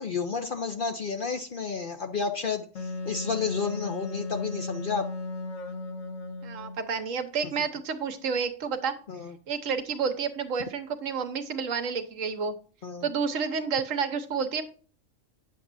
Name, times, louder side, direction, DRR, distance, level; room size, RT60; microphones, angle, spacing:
voice 1, 0.0-5.1 9.1-9.4 12.8-13.1, left 5 dB, 50° left, 6 dB, 0.7 m, -31 dB
Wind instrument woodwind instrument, 2.7-6.8, left 2 dB, 70° left, 1.5 m, -35 dB
voice 2, 6.4-8.9 9.5-12.5 13.0-14.6, right 6 dB, 80° right, 8 dB, 1.4 m, -30 dB
9.4 x 7.1 x 2.6 m, 0.42 s
omnidirectional pair, 1.3 m